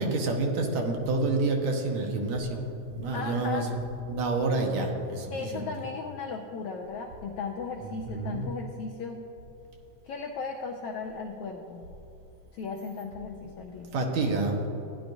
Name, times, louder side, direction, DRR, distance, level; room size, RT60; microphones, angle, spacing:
voice 1, 0.0-3.8 4.1-5.7 8.1-8.5 13.9-14.7, right 2 dB, 70° right, 1 dB, 2.3 m, -28 dB
voice 2, 3.1-3.7 5.3-9.2 10.0-11.9 12.5-13.9, left 4 dB, 85° left, 2 dB, 1.3 m, -36 dB
15.0 x 10.0 x 2.6 m, 3.0 s
omnidirectional pair, 3.4 m